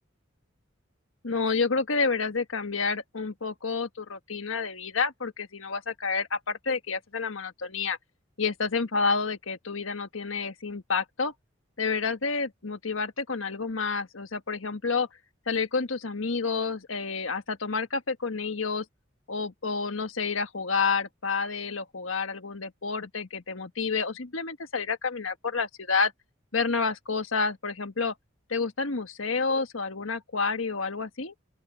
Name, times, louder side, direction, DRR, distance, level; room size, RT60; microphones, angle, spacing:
voice 1, 1.2-8.0 8.4-11.3 11.8-15.1 15.5-18.8 19.3-26.1 26.5-28.1 28.5-31.3, left 4 dB, 85° left, 1.5 m, -29 dB
open air
head